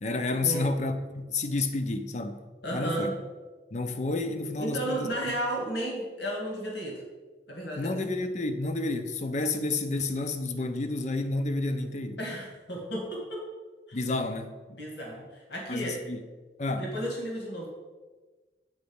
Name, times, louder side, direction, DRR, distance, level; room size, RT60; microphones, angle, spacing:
voice 1, 0.0-2.4 2.7-3.1 3.7-5.0 7.8-12.2 13.9-14.5 15.7-16.2 16.6-16.9, left 2 dB, 40° left, 0.6 m, -30 dB
voice 2, 2.6-3.2 4.6-7.0 7.5-8.0 12.2-13.4 13.9-14.0 14.7-16.0 16.8-17.7, right 1 dB, 75° left, 2.0 m, -33 dB
8.0 x 4.1 x 7.0 m
head